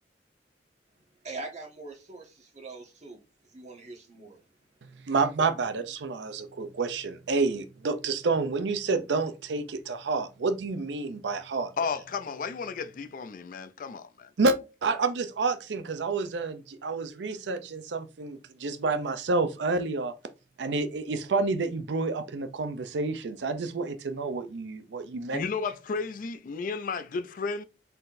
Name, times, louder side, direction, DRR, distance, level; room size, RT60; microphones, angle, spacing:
voice 1, 1.2-3.2 3.5-4.4, right 3 dB, 40° right, 1.4 m, -42 dB
voice 2, 5.1-11.7 14.4-14.6 14.8-20.1 20.6-25.5, right 3 dB, 85° right, 0.5 m, -29 dB
voice 3, 11.8-14.3 25.3-27.6, left 5 dB, 50° left, 0.4 m, -33 dB
4.2 x 3.9 x 2.6 m
head